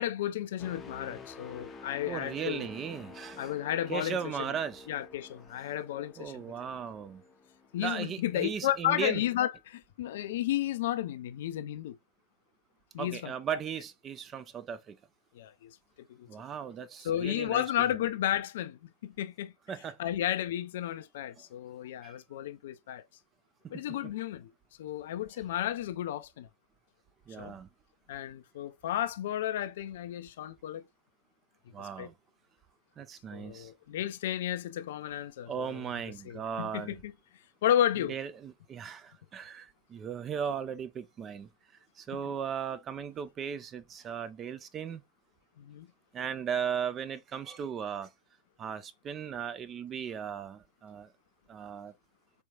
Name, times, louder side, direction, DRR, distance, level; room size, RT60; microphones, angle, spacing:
voice 1, 0.0-2.7 3.4-4.5 4.9-6.4 7.7-11.9 12.9-13.6 15.3-15.8 16.2-16.3 17.0-19.5 20.0-23.0 23.7-24.5 24.8-26.5 27.4-27.6 28.1-30.8 31.8-32.1 33.3-35.9 36.2-37.1 37.6-38.1 45.6-45.9, left 12 dB, 55° left, 0.4 m, -33 dB
sound 1, 0.6-8.4 8.9-9.1, left 3 dB, 20° left, 0.7 m, -50 dB
voice 2, 2.1-3.5 3.9-4.9 6.2-7.2 7.8-9.2 13.0-15.0 16.3-17.6 17.9-18.0 19.7-20.0 22.0-22.2 27.3-27.7 31.7-32.1 33.0-33.7 35.5-37.0 38.0-41.5 42.0-45.0 46.1-48.1 48.6-51.1 51.5-51.9, right 7 dB, 25° right, 0.5 m, -37 dB
4.4 x 3.4 x 2.3 m
figure-of-eight pair, 90°, 0 cm